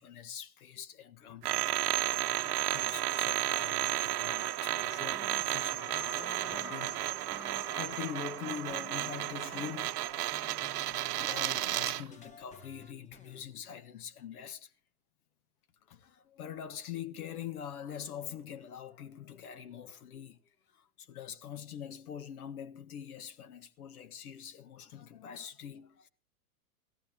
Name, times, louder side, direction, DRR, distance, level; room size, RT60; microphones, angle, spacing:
voice 1, 0.0-1.7 2.1-2.2 2.4-10.0 11.2-14.7 15.9-20.4 20.7-26.1, left 9 dB, 70° left, 1.6 m, -44 dB
sound 1, 1.4-12.1, right 14 dB, 85° right, 0.7 m, -33 dB
sound 2, 4.7-13.5, left 4 dB, 15° left, 1.2 m, -55 dB
sound 3, 5.6-9.3 10.1-10.2, left 4 dB, 50° left, 8.0 m, -50 dB
19.0 x 14.5 x 3.2 m
hypercardioid pair, 125°, 45 cm